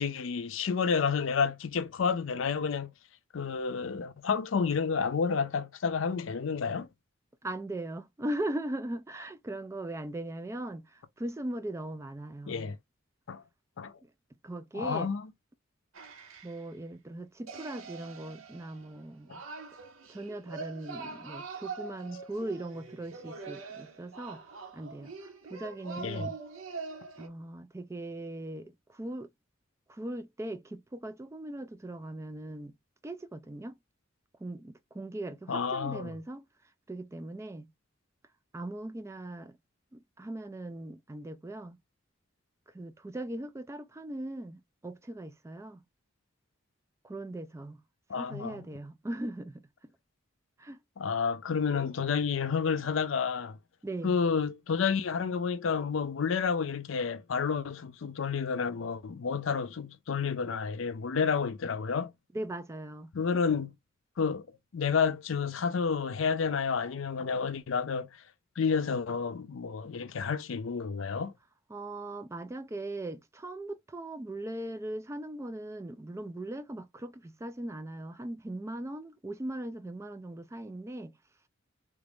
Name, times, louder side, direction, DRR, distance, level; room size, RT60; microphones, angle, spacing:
voice 1, 0.0-2.9 3.3-6.9 12.5-12.8 13.3-13.4 13.8-13.9 14.7-15.3 26.0-26.3 35.5-36.1 48.1-48.6 51.0-53.6 54.0-62.1 63.1-63.7 64.2-64.5 64.7-68.1 68.6-71.3, left 5 dB, 70° left, 0.5 m, -30 dB
voice 2, 7.4-12.7 14.0-14.1 14.4-15.1 16.4-19.4 20.1-24.4 24.7-26.4 27.2-29.3 29.9-32.7 33.0-33.8 34.4-36.5 36.9-37.7 38.5-39.6 39.9-41.8 42.7-45.8 47.0-47.8 48.1-49.7 50.6-50.8 53.8-54.2 62.3-63.1 71.7-81.1, right 1 dB, 15° right, 0.3 m, -39 dB
sound 1, 15.9-16.7 17.5-27.3, right 4 dB, 90° right, 0.8 m, -44 dB
3.3 x 2.5 x 3.4 m
head